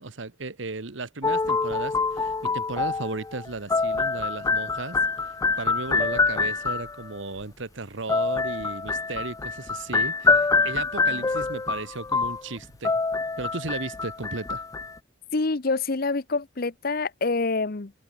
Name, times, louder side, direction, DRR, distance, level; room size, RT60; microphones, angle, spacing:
voice 1, 0.0-12.9 13.4-14.6, right 3 dB, 70° right, 1.3 m, -35 dB
sound 1, 1.2-7.1 8.1-15.0, left 4 dB, 15° left, 0.3 m, -25 dB
voice 2, 15.3-17.9, left 3 dB, 50° left, 0.9 m, -26 dB
head